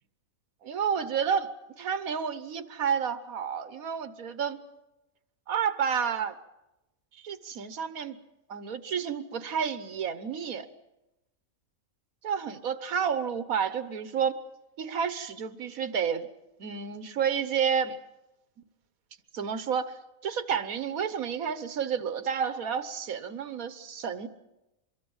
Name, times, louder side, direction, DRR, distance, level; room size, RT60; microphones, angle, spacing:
voice 1, 0.6-1.5 1.8-4.6 5.5-6.4 7.2-8.2 8.5-10.7 12.2-14.4 14.8-16.3 16.6-18.0 19.3-19.9 20.2-24.3, right 7 dB, 85° right, 12 dB, 1.6 m, -30 dB
25.0 x 22.5 x 7.2 m, 0.98 s
omnidirectional pair, 1.4 m